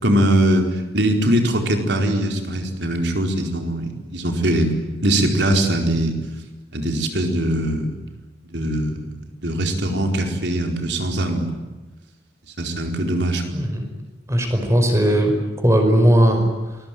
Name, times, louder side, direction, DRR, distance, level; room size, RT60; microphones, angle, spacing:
voice 1, 0.0-6.2 6.7-7.9 8.4-9.1 9.4-11.6 12.6-13.6, right 1 dB, 60° right, 4 dB, 4.5 m, -21 dB
voice 2, 13.5-13.9 14.3-15.3 15.6-16.5, right 1 dB, 15° right, 5 dB, 5.1 m, -17 dB
27.5 x 21.5 x 9.3 m, 1.2 s
head